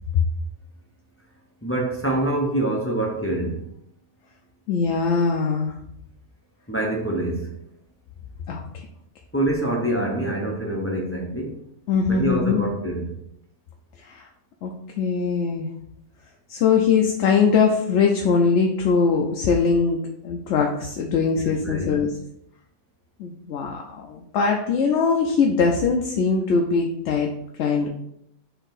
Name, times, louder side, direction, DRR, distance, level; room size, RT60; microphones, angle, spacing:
voice 1, 1.6-3.6 6.7-7.5 9.3-11.6 12.1-13.2 21.4-22.0, right 1 dB, 20° left, -1 dB, 0.4 m, -25 dB
voice 2, 4.7-5.7 8.5-8.6 11.9-12.6 14.0-14.3 14.6-15.7 16.5-22.1 23.2-27.3 27.6-27.9, left 5 dB, 70° left, 1 dB, 0.8 m, -21 dB
4.4 x 2.9 x 3.9 m, 0.76 s
omnidirectional pair, 1.3 m